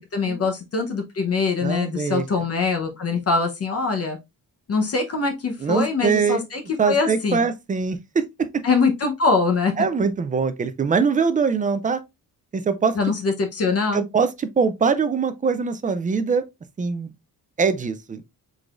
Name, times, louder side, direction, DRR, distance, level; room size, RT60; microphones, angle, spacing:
voice 1, 0.1-4.2 4.7-6.6 6.9-7.4 8.6-9.7 12.9-14.0, left 4 dB, 40° left, 0.9 m, -23 dB
voice 2, 1.6-2.2 5.6-6.4 6.8-8.6 9.8-12.0 12.5-13.1 13.9-16.4 16.8-17.1 17.6-18.3, right 5 dB, 25° right, 0.4 m, -23 dB
4.9 x 3.8 x 2.4 m
wide cardioid pair, 180°, 36 cm